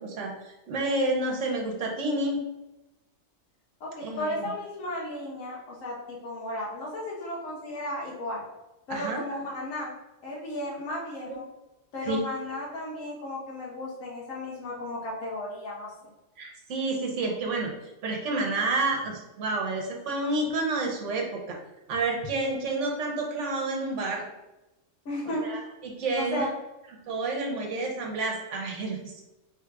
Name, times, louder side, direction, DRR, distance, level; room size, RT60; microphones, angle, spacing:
voice 1, 0.0-2.4 4.0-4.5 8.9-9.2 11.3-11.4 12.0-12.2 16.4-17.7 18.0-21.6 21.9-24.2 25.2-26.5 27.0-29.2, right 2 dB, 65° right, 1 dB, 1.1 m, -29 dB
voice 2, 3.8-8.4 8.9-9.9 10.2-11.4 11.9-16.1 25.0-25.4 26.2-26.5, left 1 dB, 75° left, -4 dB, 1.2 m, -34 dB
3.5 x 2.4 x 4.5 m, 0.98 s
omnidirectional pair, 1.4 m